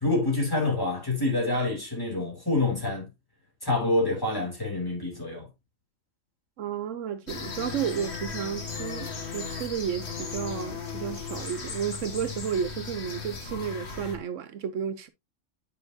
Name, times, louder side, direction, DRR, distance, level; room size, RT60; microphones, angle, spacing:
voice 1, 0.0-3.1 3.6-5.5, left 2 dB, 15° left, 3.1 m, -27 dB
voice 2, 6.6-15.1, right 8 dB, 80° right, 1.2 m, -32 dB
sound 1, 7.3-14.2, left 5 dB, 60° left, 1.7 m, -36 dB
9.4 x 5.2 x 2.7 m
omnidirectional pair, 1.3 m